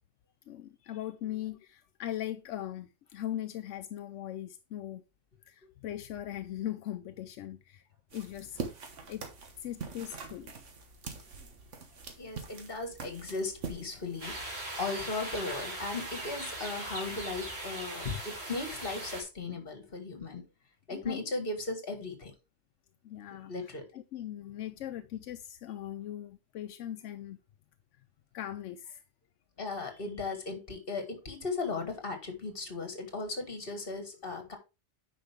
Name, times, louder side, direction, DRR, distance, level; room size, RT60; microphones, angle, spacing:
voice 1, 0.5-5.0 5.5-7.8 8.1-8.6 9.1-9.2 9.6-10.5 20.9-21.2 23.0-27.4 28.3-29.0, left 12 dB, 85° left, 0.9 m, -40 dB
sound 1, 8.1-14.3, right 5 dB, 85° right, 1.6 m, -43 dB
voice 2, 12.2-20.4 20.9-22.3 23.5-23.8 29.6-34.6, left 3 dB, 50° left, 1.9 m, -37 dB
sound 2, 14.2-19.2, right 1 dB, 60° right, 2.7 m, -39 dB
9.3 x 5.2 x 3.4 m
omnidirectional pair, 1.2 m